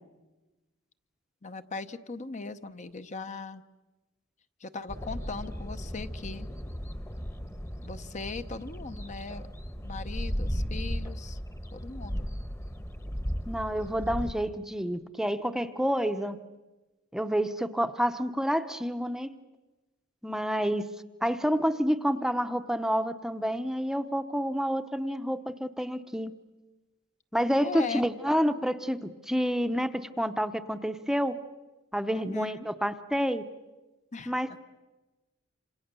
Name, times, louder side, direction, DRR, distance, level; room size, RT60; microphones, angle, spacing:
voice 1, 1.4-3.6 4.6-6.5 7.8-9.4 9.8-11.4 11.7-12.3 27.6-28.0 32.1-32.7 34.1-34.3, left 4 dB, 35° left, 10 dB, 0.8 m, -39 dB
sound 1, 4.9-14.3, equal, 15° left, 1.1 m, -36 dB
voice 2, 13.5-16.4 17.1-19.3 20.2-20.9 21.2-26.3 27.3-31.4 31.9-33.4 34.3-34.6, equal, 5° right, 10 dB, 0.8 m, -29 dB
27.5 x 27.0 x 6.8 m, 1.1 s
head